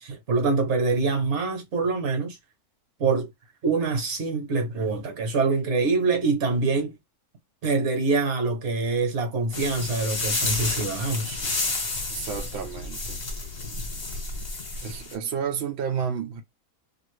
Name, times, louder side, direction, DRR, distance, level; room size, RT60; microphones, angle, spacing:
voice 1, 0.0-2.4 3.0-3.3 3.6-7.0 7.6-11.4, right 3 dB, 50° right, 1.1 m, -25 dB
sound 1, 9.5-15.1, left 3 dB, 45° left, 1.2 m, -30 dB
voice 2, 12.1-13.2 14.8-16.4, right 7 dB, 70° right, 0.6 m, -31 dB
2.7 x 2.5 x 3.1 m
omnidirectional pair, 1.6 m